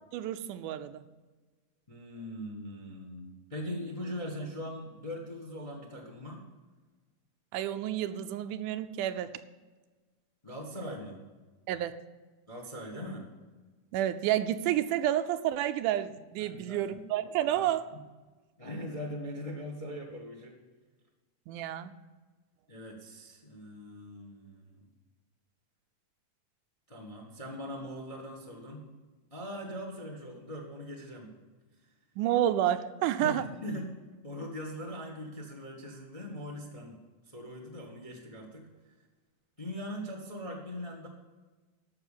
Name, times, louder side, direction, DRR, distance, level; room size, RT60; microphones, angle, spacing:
voice 1, 0.1-1.0 7.5-9.4 11.7-12.0 13.9-17.9 21.5-21.9 32.2-33.5, right 12 dB, 85° right, 11 dB, 2.1 m, -30 dB
voice 2, 1.9-6.4 10.4-11.2 12.5-13.3 16.4-17.0 17.6-17.7 17.9-18.0 18.6-20.6 22.7-24.9 26.9-28.8 29.3-31.4 33.2-33.8 34.2-37.0 37.2-38.7 39.6-41.1, equal, 25° left, 1 dB, 0.7 m, -41 dB
13.5 x 6.0 x 7.3 m, 1.3 s
omnidirectional pair, 3.6 m